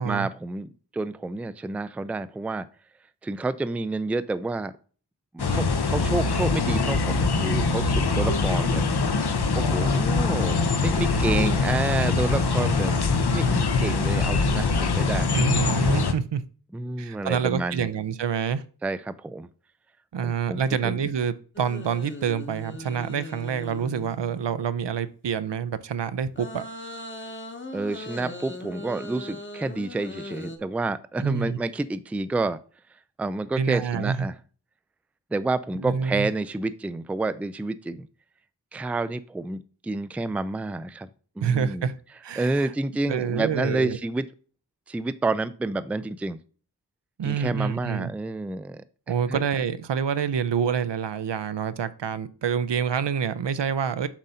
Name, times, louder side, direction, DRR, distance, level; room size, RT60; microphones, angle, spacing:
voice 1, 0.0-2.7 3.2-4.7 5.3-8.8 9.6-15.3 16.7-17.9 18.8-19.5 20.2-21.0 27.7-32.6 33.2-34.4 35.3-38.1 38.7-41.1 41.4-41.9 42.4-44.3 44.9-46.4 47.2-48.8 49.3-49.4, right 2 dB, 5° right, 13 dB, 0.3 m, -29 dB
sound 1, 5.4-16.1, left 4 dB, 65° left, 0.7 m, -23 dB
voice 2, 15.3-16.4 17.0-18.6 20.1-26.6 31.2-31.6 33.6-34.3 35.8-36.3 41.4-42.0 42.2-42.7 43.1-44.0 47.2-48.1 49.1-54.1, right 7 dB, 75° right, 15 dB, 0.6 m, -27 dB
sound 2, 21.5-24.6 26.3-30.6, left 1 dB, 25° left, 0.9 m, -39 dB
7.2 x 2.7 x 5.5 m, 0.40 s
wide cardioid pair, 45°, 43 cm